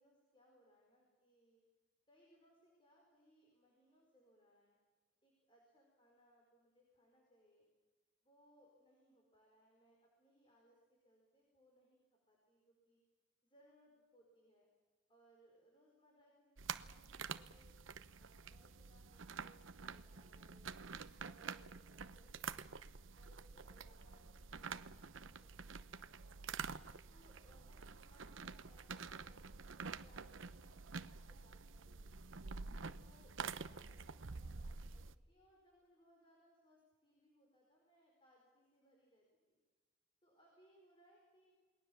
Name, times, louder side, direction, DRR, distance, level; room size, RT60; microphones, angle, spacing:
voice 1, 0.0-1.7 2.1-4.8 5.2-7.7 8.2-12.0 12.3-13.0 13.4-14.7 15.1-17.8 18.2-20.8 21.2-22.8 23.2-26.6 27.1-32.0 33.0-39.6 40.2-41.5, equal, 25° left, -1 dB, 5.0 m, -70 dB
sound 1, 16.6-35.1, right 5 dB, 80° right, 0.9 m, -48 dB
28.5 x 21.0 x 7.2 m, 1.4 s
head